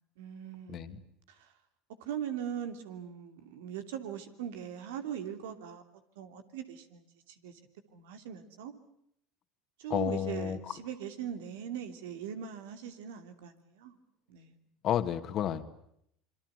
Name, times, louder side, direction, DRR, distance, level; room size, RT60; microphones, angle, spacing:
voice 1, 0.2-1.0 1.3-1.5 2.0-5.8 6.2-7.6 7.9-8.7 9.8-14.0 14.3-14.6, right 9 dB, 85° right, 9 dB, 3.0 m, -40 dB
voice 2, 0.7-1.0 9.9-10.8 14.8-15.6, left 10 dB, 50° left, 10 dB, 2.1 m, -31 dB
26.5 x 23.5 x 8.1 m, 0.73 s
supercardioid pair, 100°, 0 cm